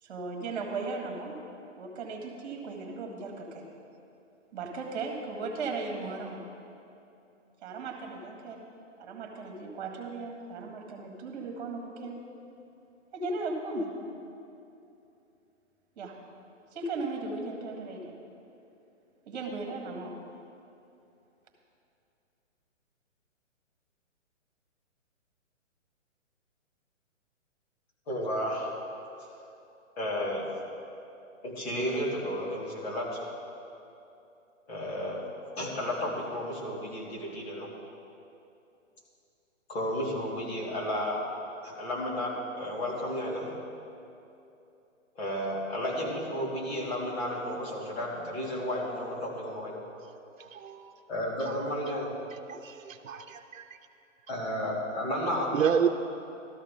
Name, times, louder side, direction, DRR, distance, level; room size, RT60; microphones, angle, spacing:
voice 1, 0.0-1.4 1.8-3.6 4.5-6.4 7.6-8.6 9.0-12.2 13.1-13.9 15.9-16.1 16.7-18.1 19.2-20.1, right 3 dB, 35° right, 2 dB, 1.8 m, -36 dB
voice 2, 28.1-28.7 30.0-30.5 31.4-33.3 34.7-35.2 35.6-37.7 39.7-41.2 41.6-43.5 45.1-49.8 51.1-52.1 54.3-55.5, equal, 50° left, -4 dB, 3.1 m, -32 dB
voice 3, 50.4-50.9 51.5-51.7 52.5-53.6 55.5-55.9, right 8 dB, 75° right, 4 dB, 0.7 m, -29 dB
13.5 x 13.0 x 3.7 m, 2.7 s
hypercardioid pair, 165°, 39 cm